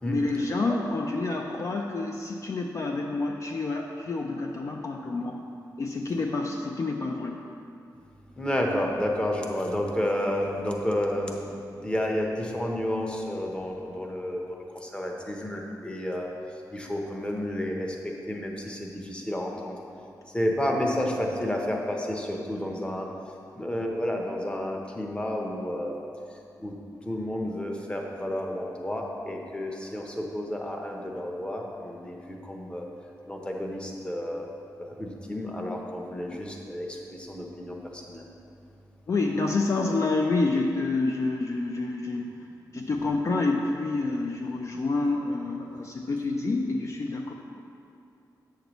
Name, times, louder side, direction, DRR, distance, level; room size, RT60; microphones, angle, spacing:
voice 1, 0.1-5.4 5.8-7.4 39.1-42.4 42.7-47.3, left 3 dB, 45° left, 1 dB, 0.4 m, -28 dB
voice 2, 8.4-16.3 16.7-19.8 20.3-23.1 23.5-25.9 26.6-26.7 27.0-32.8 33.3-34.5 34.8-38.2, left 1 dB, 15° left, 0 dB, 0.8 m, -31 dB
8.0 x 6.6 x 3.0 m, 2.6 s
wide cardioid pair, 105°, 7 cm